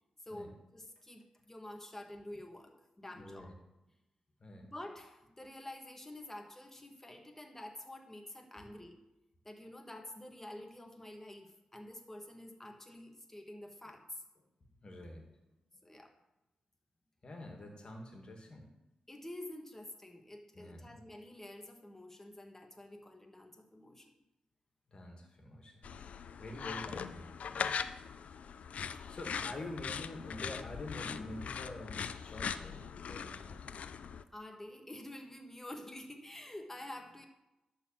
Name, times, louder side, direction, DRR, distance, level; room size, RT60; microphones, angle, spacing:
voice 1, 0.2-3.5 4.7-9.0 9.4-14.2 15.8-16.1 19.1-24.1 34.3-37.3, left 1 dB, 15° left, 3 dB, 1.3 m, -48 dB
voice 2, 3.0-3.5 4.4-4.7 8.6-8.7 14.6-15.3 17.2-18.6 20.5-21.0 24.9-25.9 26.4-27.3 29.1-33.6, left 1 dB, 45° left, 2 dB, 2.1 m, -47 dB
sound 1, 25.8-34.2, left 6 dB, 75° left, 0.4 m, -41 dB
11.5 x 4.1 x 7.4 m, 0.98 s
cardioid pair, 90°, 2 cm